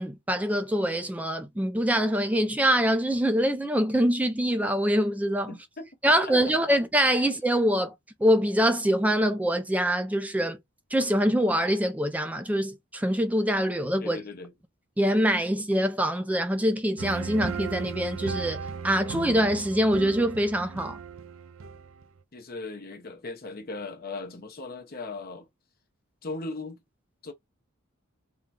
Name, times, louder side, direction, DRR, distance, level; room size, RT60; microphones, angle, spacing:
voice 1, 0.0-5.6 6.0-7.9 8.2-10.6 10.9-14.2 15.0-21.0, equal, 5° right, 0.4 m, -24 dB
voice 2, 5.5-6.5 14.0-14.5 22.3-25.5 26.2-26.8 27.2-27.3, left 3 dB, 50° left, 0.9 m, -38 dB
sound 1, 17.0-22.2, right 5 dB, 75° right, 0.5 m, -36 dB
3.7 x 2.3 x 4.1 m
head